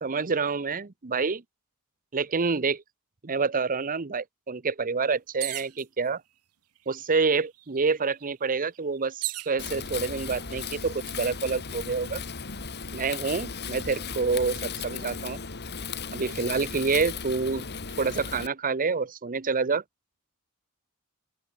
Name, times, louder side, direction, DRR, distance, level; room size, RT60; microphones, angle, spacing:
voice 1, 0.0-1.4 2.1-2.8 3.2-6.2 6.9-12.2 12.9-15.4 16.1-17.7 18.0-19.8, right 4 dB, 40° right, 0.8 m, -27 dB
sound 1, 5.4-5.8 6.8-6.9 7.2-9.6 10.3-10.8, right 18 dB, 85° right, 1.3 m, -36 dB
Wind, 9.6-18.5, left 5 dB, 50° left, 2.4 m, -36 dB
open air
head